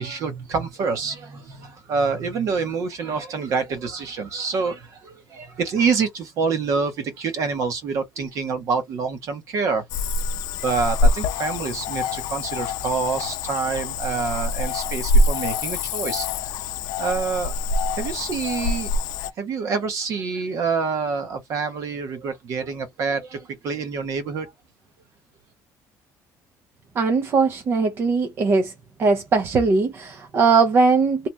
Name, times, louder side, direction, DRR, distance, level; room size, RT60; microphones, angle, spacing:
voice 1, 0.0-9.8 10.6-16.3 17.0-17.6 18.0-19.0 19.4-24.5, right 5 dB, 50° right, 1.0 m, -26 dB
Cricket / Frog, 9.9-19.3, left 2 dB, 75° left, 0.5 m, -25 dB
voice 2, 27.0-28.7 29.0-31.3, right 4 dB, 35° right, 0.6 m, -20 dB
2.7 x 2.5 x 3.3 m
cardioid pair, 170°, 7 cm